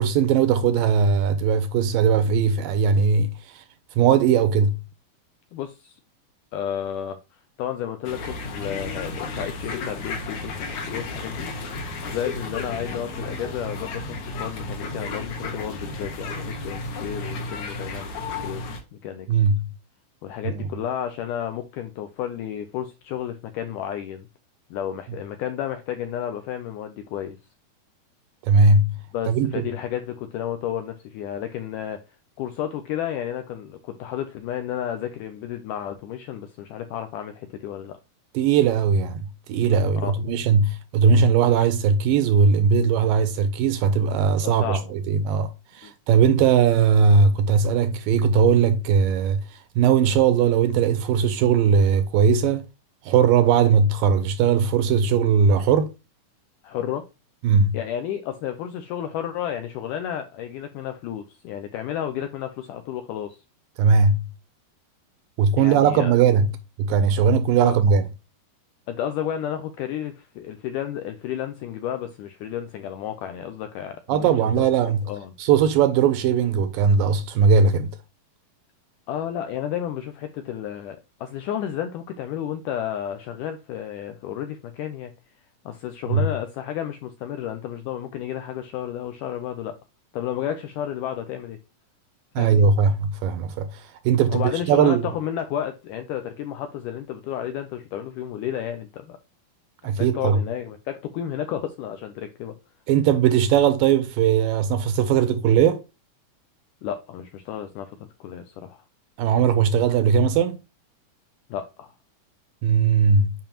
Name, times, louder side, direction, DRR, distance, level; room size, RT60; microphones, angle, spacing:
voice 1, 0.0-3.6 4.0-4.8 19.3-19.7 20.5-20.7 28.4-29.0 29.3-29.6 38.3-39.2 39.5-45.5 45.8-49.4 49.8-52.7 53.1-55.9 57.4-57.8 63.8-64.3 65.4-66.5 66.8-68.0 74.1-75.1 75.4-77.9 86.1-86.3 92.4-95.0 99.8-100.4 102.9-105.8 109.2-110.6 112.6-113.3, right 6 dB, 80° right, 2.1 m, -19 dB
voice 2, 5.5-6.0 6.5-7.2 7.6-11.5 11.8-18.1 18.4-18.6 18.9-19.3 20.2-24.3 24.7-27.4 29.1-32.0 32.4-38.0 39.9-40.2 44.4-44.9 45.8-45.9 56.6-57.0 57.7-63.4 65.6-66.1 67.6-67.8 68.9-75.3 79.1-85.1 85.7-89.7 90.1-91.6 92.4-92.7 94.3-99.2 99.8-102.5 106.8-108.8 111.5-111.9, left 10 dB, 90° left, 1.8 m, -32 dB
sound 1, 8.0-18.8, left 3 dB, 60° left, 2.4 m, -33 dB
7.1 x 5.5 x 2.9 m
omnidirectional pair, 4.4 m